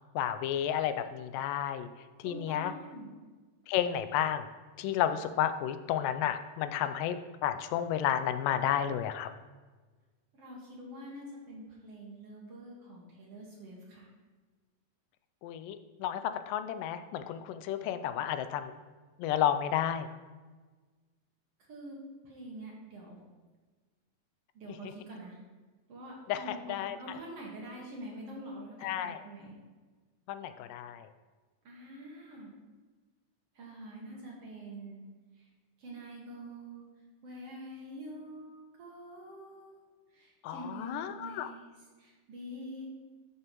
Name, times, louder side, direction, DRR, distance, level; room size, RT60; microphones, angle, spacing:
voice 1, 0.0-1.9 2.2-2.7 3.7-4.5 4.8-9.3 15.4-18.8 19.2-20.1 26.3-27.0 28.8-29.2 30.3-31.1 40.4-41.5, left 10 dB, 90° left, 10 dB, 2.2 m, -32 dB
voice 2, 2.2-3.1 10.3-14.1 21.7-22.0 22.2-23.2 24.5-25.4 25.9-29.5 31.6-32.5 33.6-35.0 35.4-35.5 35.8-36.8 37.2-39.8 40.1-42.9, right 1 dB, 55° right, -3 dB, 2.3 m, -46 dB
12.5 x 6.6 x 3.0 m, 1.3 s
omnidirectional pair, 3.8 m